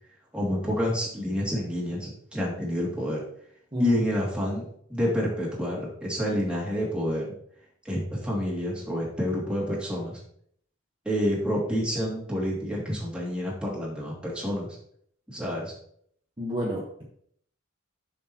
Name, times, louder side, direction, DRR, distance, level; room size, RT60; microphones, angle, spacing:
voice 1, 0.3-3.2 3.8-7.2 7.8-10.2 11.0-14.8 15.3-15.7, equal, 5° right, -5 dB, 2.6 m, -28 dB
voice 2, 3.7-4.0 16.4-17.0, equal, 25° right, -4 dB, 1.3 m, -30 dB
7.5 x 6.5 x 3.0 m, 0.65 s
head